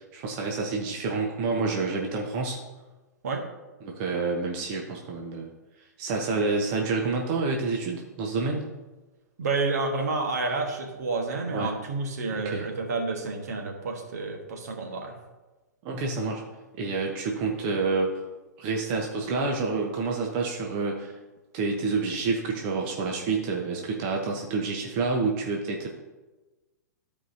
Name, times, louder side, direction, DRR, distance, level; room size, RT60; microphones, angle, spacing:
voice 1, 0.1-2.6 3.8-5.5 5.8-8.7 11.5-11.7 12.3-12.7 15.8-16.4 16.8-18.2 18.6-21.2 21.5-25.9, right 4 dB, 35° right, 0 dB, 1.1 m, -28 dB
voice 2, 9.4-15.1, right 3 dB, 60° right, 2 dB, 1.4 m, -29 dB
14.0 x 4.9 x 2.8 m, 1.2 s
figure-of-eight pair, 110°, 10 cm